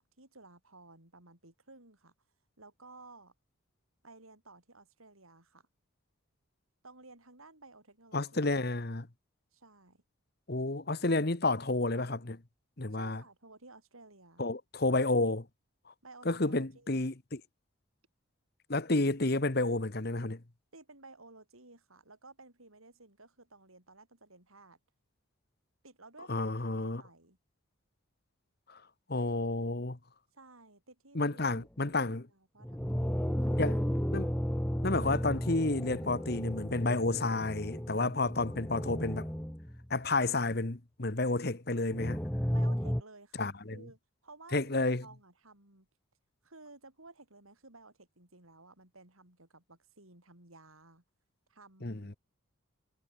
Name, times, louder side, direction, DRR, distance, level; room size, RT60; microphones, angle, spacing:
voice 1, 0.0-2.1 2.6-3.3 4.0-5.6 6.8-8.4 9.5-10.0 12.9-14.4 16.0-17.1 20.7-24.8 25.8-27.4 30.3-31.2 31.9-33.7 42.5-45.9 46.4-51.0 51.5-52.1, right 3 dB, 85° right, 7.8 m, -55 dB
voice 2, 8.1-9.1 10.5-12.4 12.8-13.2 14.4-15.5 16.2-17.4 18.7-20.4 26.3-27.0 28.7-28.8 29.1-30.0 31.1-32.3 33.6-33.8 34.1-34.3 34.8-39.3 39.9-42.2 43.4-43.8 44.5-45.0 51.8-52.2, left 2 dB, 50° left, 1.3 m, -30 dB
sound 1, 31.6-31.7 32.6-39.9 41.9-43.0, equal, 5° left, 1.1 m, -33 dB
head